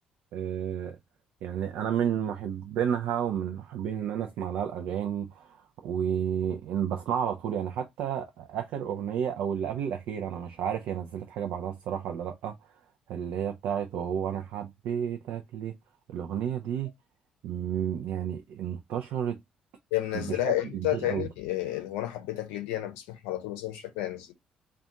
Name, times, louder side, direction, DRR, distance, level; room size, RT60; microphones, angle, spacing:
voice 1, 0.3-1.0 1.4-12.6 13.1-15.8 16.1-16.9 17.4-19.4 20.1-21.3, right 9 dB, 60° right, 0.4 m, -31 dB
voice 2, 19.9-24.3, left 14 dB, 70° left, 0.6 m, -31 dB
2.5 x 2.3 x 3.7 m
figure-of-eight pair, 45°, 4 cm